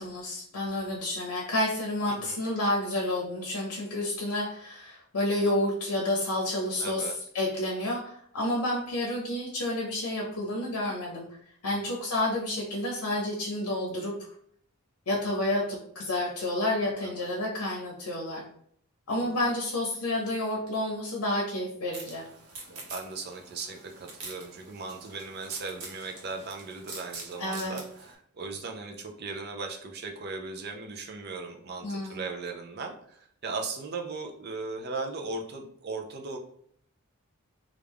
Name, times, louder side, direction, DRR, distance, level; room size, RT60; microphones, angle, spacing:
voice 1, 0.0-11.2 11.6-14.1 15.1-18.4 19.1-22.2 27.4-27.8 31.8-32.2, left 1 dB, 80° left, -2 dB, 0.7 m, -30 dB
voice 2, 2.1-2.4 6.8-7.2 11.7-11.9 17.0-17.3 19.1-19.4 22.7-36.4, right 3 dB, 45° right, 4 dB, 0.5 m, -38 dB
sound 1, 21.9-28.1, right 3 dB, 75° right, 1.0 m, -45 dB
3.3 x 2.4 x 3.4 m, 0.65 s
head